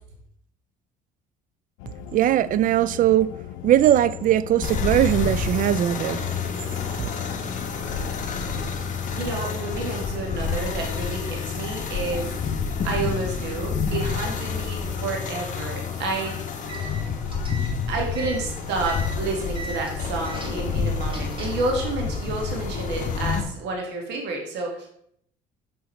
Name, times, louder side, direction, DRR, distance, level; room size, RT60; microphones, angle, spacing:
sound 1, 1.8-8.8, left 14 dB, 85° left, 0.4 m, -39 dB
voice 1, 2.1-3.3 3.6-6.2, right 12 dB, 45° right, 0.4 m, -20 dB
sound 2, 4.6-23.4, left 5 dB, 45° left, 1.2 m, -29 dB
voice 2, 9.1-12.4 12.8-16.5 17.9-24.9, right 3 dB, 70° right, 1.9 m, -30 dB
sound 3, 16.5-21.7, right 2 dB, 25° right, 1.7 m, -39 dB
5.7 x 5.5 x 4.1 m
supercardioid pair, 80°, 18 cm